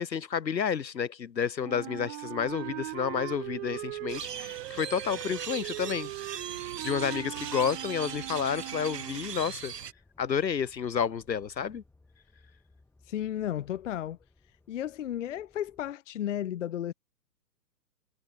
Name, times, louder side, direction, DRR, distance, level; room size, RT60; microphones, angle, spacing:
voice 1, 0.0-6.1 6.8-9.7 10.2-11.8, left 7 dB, 80° left, 1.4 m, -30 dB
Wind instrument woodwind instrument, 1.6-9.3, right 19 dB, 35° right, 2.5 m, -39 dB
sound 1, 2.4-15.9, left 2 dB, 5° left, 5.0 m, -62 dB
sound 2, 4.1-9.9, right 8 dB, 70° right, 1.9 m, -40 dB
voice 2, 13.1-14.2 14.7-16.9, left 11 dB, 50° left, 0.5 m, -33 dB
figure-of-eight pair, 130°, 50 cm